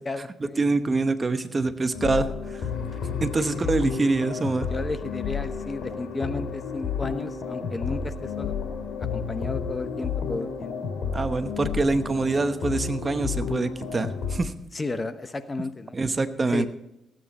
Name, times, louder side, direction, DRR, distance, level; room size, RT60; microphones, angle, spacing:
voice 1, 0.0-0.6 4.7-8.6 9.0-10.7 14.7-16.0 16.5-16.7, left 3 dB, 30° left, 11 dB, 1.0 m, -33 dB
voice 2, 0.6-2.7 3.2-4.7 11.1-14.5 15.9-16.7, right 3 dB, 30° right, 10 dB, 1.0 m, -25 dB
sound 1, 1.9-14.4, left 6 dB, 75° left, 3.0 m, -31 dB
19.0 x 9.2 x 4.2 m, 0.84 s
cardioid pair, 80°, 0 cm